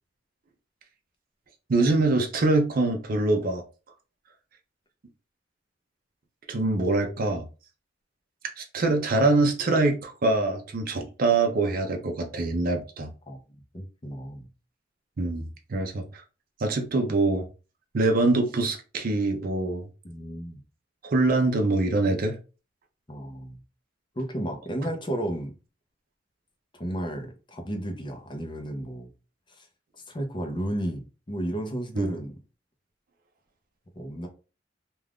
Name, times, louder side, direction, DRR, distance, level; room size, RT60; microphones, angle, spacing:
voice 1, 1.7-3.6 6.5-7.5 8.6-13.1 15.2-16.0 16.6-17.5 17.9-19.9 21.0-22.4 24.8-24.9 31.9-32.1, right 2 dB, 50° right, 0.5 m, -24 dB
voice 2, 13.7-14.5 20.0-20.6 23.1-23.6 24.2-25.5 26.8-29.1 29.6-29.7 30.1-32.3 34.0-34.3, right 1 dB, 25° left, 0.6 m, -33 dB
2.4 x 2.3 x 3.4 m
head